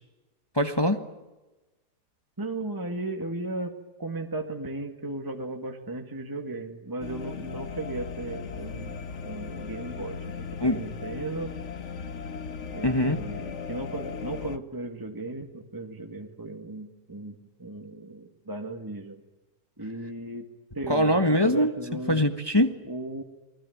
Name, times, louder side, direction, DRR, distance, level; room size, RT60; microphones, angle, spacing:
voice 1, 0.5-1.0 10.6-10.8 12.8-13.2 20.9-21.7 22.1-22.7, left 1 dB, 15° left, 6 dB, 1.4 m, -22 dB
voice 2, 2.4-3.7 4.0-9.0 9.2-11.5 12.7-19.2 19.8-20.4 20.7-22.2 22.8-23.2, right 2 dB, 15° right, 3 dB, 2.0 m, -36 dB
sound 1, 7.0-14.6, left 6 dB, 50° left, 1.3 m, -37 dB
29.0 x 20.0 x 9.4 m, 1.1 s
omnidirectional pair, 1.7 m